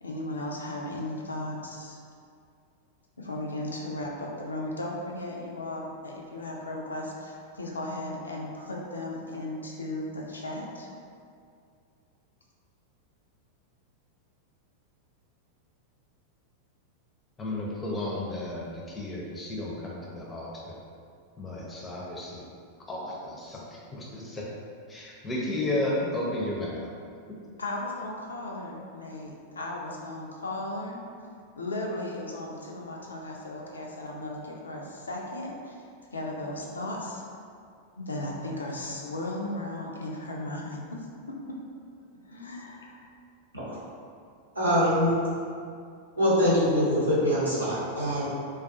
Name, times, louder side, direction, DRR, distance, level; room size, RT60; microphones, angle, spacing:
voice 1, 0.0-2.0 3.2-10.9 27.6-31.0 31.6-35.9 36.1-37.2 38.0-41.6 42.3-43.0, left 1 dB, 75° left, -1 dB, 0.3 m, -36 dB
voice 2, 17.4-20.8 21.4-22.4 22.9-24.5 24.9-26.9, left 1 dB, 15° left, -4 dB, 0.5 m, -33 dB
voice 3, 44.5-45.1 46.2-48.4, equal, 80° right, -9 dB, 0.8 m, -24 dB
2.3 x 2.2 x 2.5 m, 2.3 s
figure-of-eight pair, 90°, 0 cm